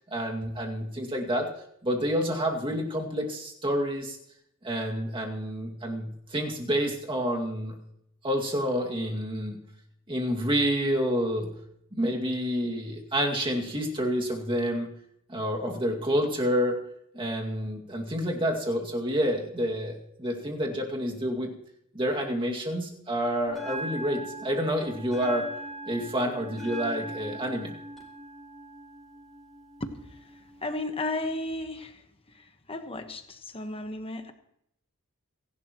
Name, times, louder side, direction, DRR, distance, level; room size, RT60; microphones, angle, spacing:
voice 1, 0.1-1.5 1.8-4.2 4.6-7.7 8.2-9.6 10.1-11.5 11.9-14.9 15.3-16.8 17.1-21.5 21.9-25.5 25.9-27.7, equal, 25° right, 0 dB, 2.3 m, -28 dB
Bell, 23.5-31.5, right 1 dB, ahead, 4.5 m, -41 dB
voice 2, 29.8-34.3, left 2 dB, 25° left, 7 dB, 1.2 m, -35 dB
27.5 x 11.5 x 3.1 m, 0.76 s
head